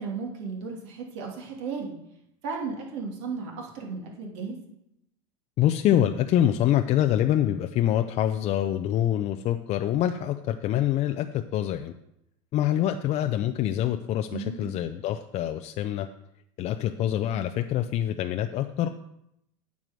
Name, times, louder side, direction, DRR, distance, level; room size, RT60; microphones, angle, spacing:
voice 1, 0.0-1.9 2.4-4.6 14.3-14.8, right 5 dB, 70° right, -1 dB, 2.7 m, -35 dB
voice 2, 5.6-11.9 12.5-16.1 16.6-18.9, left 11 dB, 45° left, 7 dB, 0.5 m, -25 dB
9.2 x 4.8 x 7.5 m, 0.80 s
supercardioid pair, 110°, 16 cm